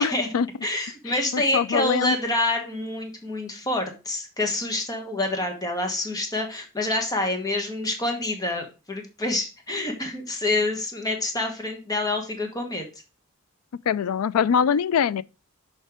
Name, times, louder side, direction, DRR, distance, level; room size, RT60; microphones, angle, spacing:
voice 1, 0.0-0.5 1.3-2.2 13.9-15.2, left 7 dB, 80° left, 0.4 m, -23 dB
voice 2, 0.6-12.9, left 2 dB, 15° left, 1.3 m, -27 dB
6.6 x 4.6 x 4.9 m
head